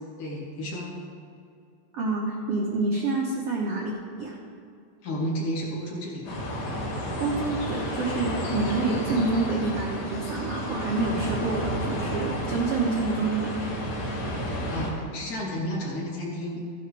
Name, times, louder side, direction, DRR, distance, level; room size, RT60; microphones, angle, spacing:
voice 1, 0.2-1.0 5.0-6.3 14.4-16.6, equal, 55° left, -4 dB, 3.5 m, -32 dB
voice 2, 1.9-4.4 7.2-13.7, right 3 dB, 85° right, -2 dB, 1.3 m, -28 dB
sound 1, 6.3-14.9, equal, 75° left, 3.8 m, -31 dB
15.5 x 9.9 x 3.4 m, 2.4 s
omnidirectional pair, 4.4 m